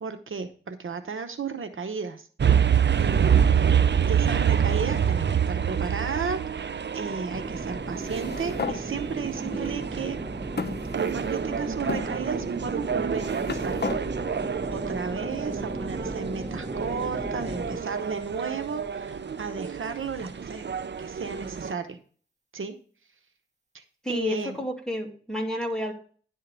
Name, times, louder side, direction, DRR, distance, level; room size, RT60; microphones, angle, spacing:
voice 1, 0.0-2.3 3.0-3.8 4.1-10.2 11.0-13.8 14.7-20.6 21.0-22.0 22.5-22.7 23.7-24.6, right 5 dB, 85° right, 7 dB, 0.9 m, -34 dB
sound 1, 2.4-21.7, right 8 dB, 60° right, 0.5 m, -27 dB
sound 2, 7.3-17.8, right 1 dB, 35° right, 1.9 m, -36 dB
sound 3, 8.0-8.8 9.6-9.7 10.6-11.4 11.9-12.1 13.0-14.0, left 4 dB, 55° left, 0.8 m, -33 dB
voice 2, 9.5-9.9 24.0-25.9, equal, 5° left, 0 dB, 2.6 m, -30 dB
11.0 x 3.7 x 6.7 m, 0.42 s
wide cardioid pair, 50°, 20 cm